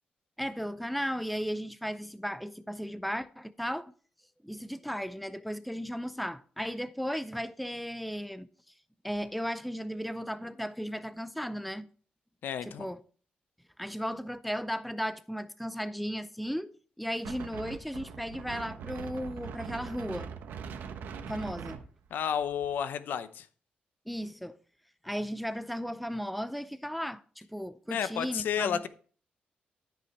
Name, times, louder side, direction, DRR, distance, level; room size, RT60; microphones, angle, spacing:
voice 1, 0.4-3.9 4.4-8.5 9.0-11.9 12.7-13.0 13.8-20.3 21.3-21.8 24.1-24.6 25.0-28.8, equal, ahead, 0.5 m, -35 dB
voice 2, 12.4-12.8 22.1-23.5 27.9-28.9, left 8 dB, 80° left, 0.8 m, -31 dB
Wind, 17.2-22.7, right 7 dB, 85° right, 1.1 m, -42 dB
13.0 x 5.6 x 4.3 m
cardioid pair, 95°, 3 cm